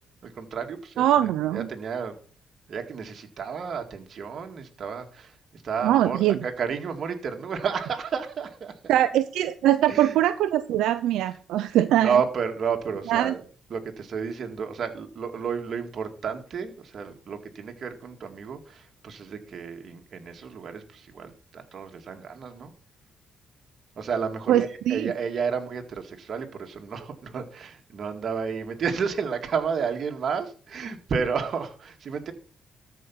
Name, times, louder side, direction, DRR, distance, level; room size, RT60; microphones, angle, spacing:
voice 1, 0.2-2.2 2.7-8.8 9.9-10.2 12.0-13.4 13.7-22.7 24.0-32.3, right 6 dB, 55° right, 5 dB, 2.0 m, -31 dB
voice 2, 1.0-1.7 5.8-6.4 8.9-12.2 13.1-13.3 24.5-25.1, right 12 dB, 85° right, 10 dB, 0.6 m, -22 dB
13.0 x 5.2 x 5.8 m, 0.44 s
cardioid pair, 90°, 0 cm